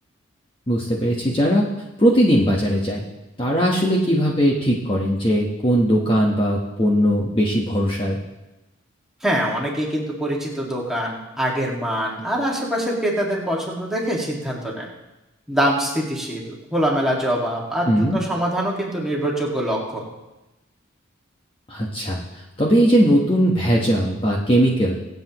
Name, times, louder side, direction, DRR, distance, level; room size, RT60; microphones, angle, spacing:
voice 1, 0.7-1.6 2.0-3.0 3.4-8.2 17.9-18.2 21.7-22.2 22.6-25.0, equal, 25° left, -2 dB, 1.1 m, -19 dB
voice 2, 9.2-14.9 15.5-20.1, equal, ahead, -4 dB, 1.9 m, -24 dB
23.5 x 8.0 x 3.0 m, 1.0 s
head